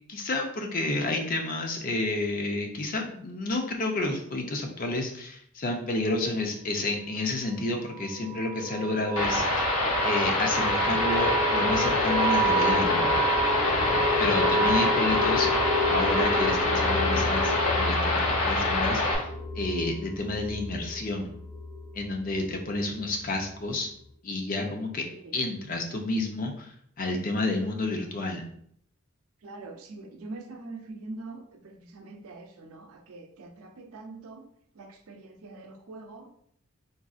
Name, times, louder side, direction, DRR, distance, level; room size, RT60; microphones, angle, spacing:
voice 1, 0.1-9.7 10.0-13.2 14.2-15.5 15.9-19.3 19.6-21.3 21.9-23.9 24.2-25.0 25.3-28.5, left 2 dB, 40° left, 2 dB, 0.5 m, -30 dB
sound 1, 7.9-22.3, right 1 dB, 45° right, 1.0 m, -29 dB
sound 2, 9.2-19.2, left 2 dB, 70° left, 0.8 m, -26 dB
voice 2, 29.4-34.5 34.8-36.3, right 3 dB, 85° right, 5 dB, 0.5 m, -43 dB
3.9 x 2.5 x 2.3 m, 0.65 s
head